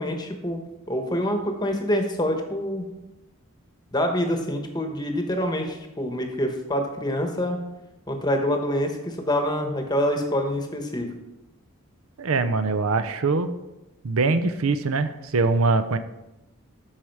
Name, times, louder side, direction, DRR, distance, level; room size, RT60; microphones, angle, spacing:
voice 1, 0.0-2.8 3.9-7.6 8.1-11.1, equal, 20° left, 5 dB, 1.0 m, -26 dB
voice 2, 12.2-13.5 14.0-16.0, right 3 dB, 75° right, 11 dB, 0.6 m, -23 dB
13.0 x 4.9 x 4.6 m, 0.96 s
head